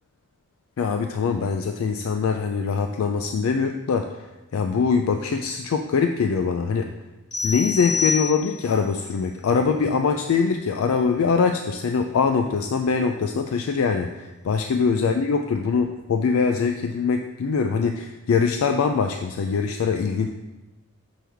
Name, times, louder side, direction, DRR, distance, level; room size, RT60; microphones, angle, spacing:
voice 1, 0.8-4.1 4.5-6.9 7.4-20.3, left 5 dB, 75° left, 6 dB, 0.3 m, -23 dB
sound 1, 7.3-8.8, left 5 dB, 55° left, 1.8 m, -27 dB
6.2 x 6.0 x 3.4 m, 1.1 s
head